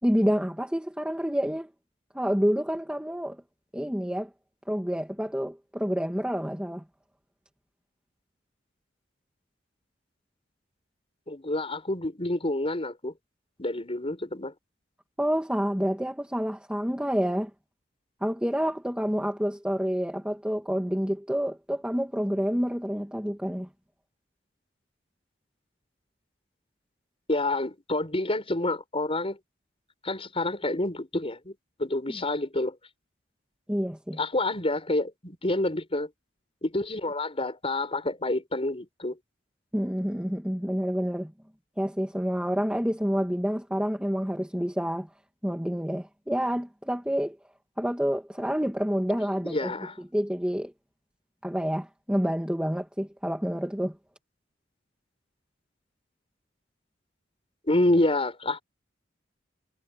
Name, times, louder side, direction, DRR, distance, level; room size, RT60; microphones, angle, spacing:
voice 1, 0.0-1.7 2.1-3.4 3.7-4.3 4.7-6.8 15.2-17.5 18.2-23.7 33.7-34.2 39.7-41.3 41.8-45.1 45.4-47.4 47.8-49.7 50.1-50.7 51.4-54.0, equal, 5° right, 2.2 m, -28 dB
voice 2, 11.3-13.1 13.6-14.5 27.3-29.4 30.0-31.5 31.8-32.8 34.2-36.1 36.6-39.2 49.4-49.9 57.7-58.6, left 2 dB, 30° left, 5.5 m, -28 dB
head